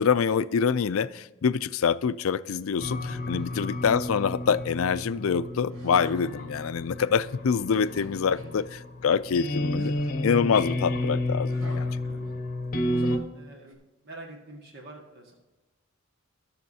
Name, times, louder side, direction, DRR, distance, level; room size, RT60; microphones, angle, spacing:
voice 1, 0.0-8.6 9.0-10.0 10.2-11.9, left 6 dB, 80° left, 15 dB, 0.4 m, -25 dB
sound 1, 2.8-13.2, left 1 dB, 45° left, 0.9 m, -31 dB
voice 2, 3.3-3.6 8.3-8.6 12.1-12.5 12.9-15.3, right 1 dB, 55° right, 0 dB, 1.8 m, -45 dB
sound 2, 5.7-6.5 7.7-8.6 9.7-10.4 11.5-12.6 13.7-13.8, equal, 70° right, 2.0 m, -47 dB
19.5 x 7.0 x 2.8 m, 1.1 s
head